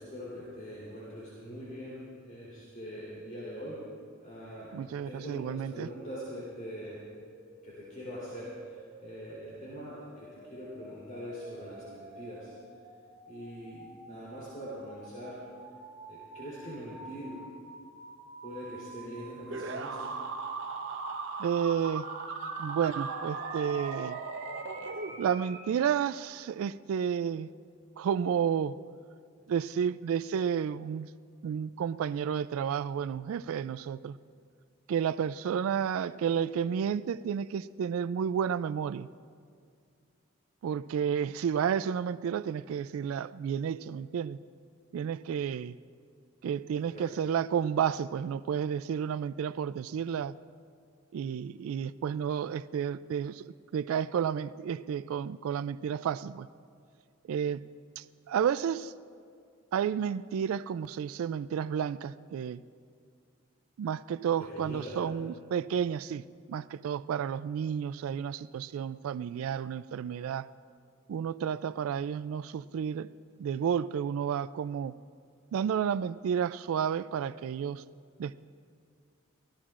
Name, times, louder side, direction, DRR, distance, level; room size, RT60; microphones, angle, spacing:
voice 1, 0.0-3.8 4.2-4.7 5.0-7.0 7.6-8.8 9.0-12.5 13.3-15.4 16.1-17.4 18.4-20.1 46.8-47.0 64.5-65.0, equal, 40° left, -8 dB, 3.5 m, -42 dB
voice 2, 4.7-5.9 21.4-22.1 22.6-24.2 25.2-27.5 28.0-28.8 29.5-31.1 31.4-34.2 34.9-39.1 40.6-44.4 44.9-45.8 46.4-50.3 51.1-56.5 57.3-57.6 58.0-58.9 59.7-62.6 63.8-70.5 71.1-73.1 73.4-75.0 75.5-77.8 78.2-78.3, right 8 dB, 85° right, 16 dB, 0.3 m, -31 dB
sound 1, 6.8-25.7, right 3 dB, 25° right, 2.1 m, -48 dB
sound 2, 19.5-25.5, right 4 dB, 60° right, 0.8 m, -38 dB
23.5 x 17.0 x 2.5 m, 2.2 s
head